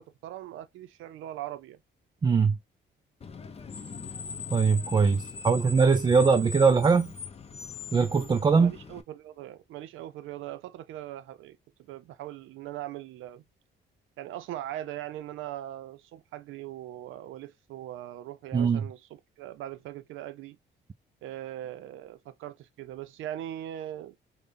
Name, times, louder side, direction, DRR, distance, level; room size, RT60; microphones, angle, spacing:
voice 1, 0.0-1.8 8.6-13.4 14.2-20.6 21.2-24.1, right 13 dB, 85° right, 0.5 m, -40 dB
voice 2, 2.2-2.6 4.5-7.1 7.9-8.7 18.5-18.8, right 5 dB, 20° right, 0.4 m, -22 dB
Screech, 3.2-9.0, left 4 dB, 30° left, 0.6 m, -40 dB
5.0 x 2.2 x 2.5 m
cardioid pair, 90°, 20 cm